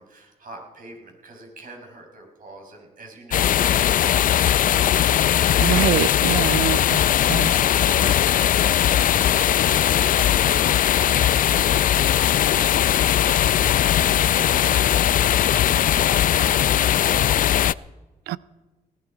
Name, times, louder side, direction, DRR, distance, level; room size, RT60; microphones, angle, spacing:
voice 1, 0.0-4.6 6.2-17.5, right 2 dB, 60° right, 5.3 m, -44 dB
sound 1, 3.3-17.7, left 11 dB, 60° left, 0.4 m, -19 dB
voice 2, 5.6-6.8 7.3-7.5 18.3-18.4, right 14 dB, 90° right, 0.5 m, -24 dB
19.0 x 12.5 x 4.9 m
supercardioid pair, 55°, 16 cm